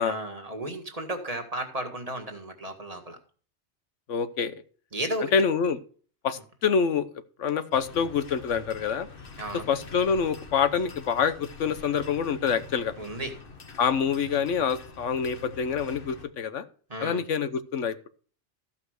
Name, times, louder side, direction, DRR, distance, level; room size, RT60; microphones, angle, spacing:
voice 1, 0.0-3.2 4.9-5.3 9.4-9.6 13.0-13.3 16.9-17.2, right 1 dB, 30° right, 5 dB, 1.8 m, -34 dB
voice 2, 4.1-4.6 5.3-5.8 6.2-7.1 7.4-9.1 9.7-12.9 13.8-16.6 17.0-18.1, left 6 dB, 90° left, 12 dB, 1.3 m, -26 dB
sound 1, 7.7-16.3, left 4 dB, 50° left, 1.5 m, -45 dB
14.0 x 5.8 x 6.4 m, 0.43 s
omnidirectional pair, 1.2 m